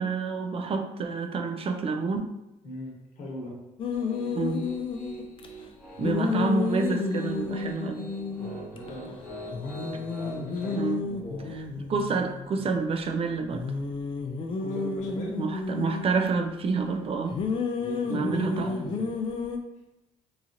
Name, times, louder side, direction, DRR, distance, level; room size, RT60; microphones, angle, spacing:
voice 1, 0.0-2.3 4.3-4.7 6.0-8.1 10.7-11.0 11.5-11.6 11.9-13.6 15.4-17.4 18.1-18.7, right 4 dB, 40° right, 4 dB, 0.4 m, -28 dB
voice 2, 2.6-3.6 6.1-6.5 8.4-11.6 14.6-15.4 17.8-19.1, equal, 60° left, -3 dB, 1.1 m, -40 dB
sound 1, 3.8-5.5 6.0-8.9 9.2-9.3 9.5-13.0 13.5-16.3 17.3-19.6, left 4 dB, 40° left, 0.4 m, -31 dB
Piano, 3.9-10.8, right 1 dB, ahead, 1.1 m, -43 dB
2.9 x 2.4 x 2.5 m, 0.91 s
supercardioid pair, 75°, 14 cm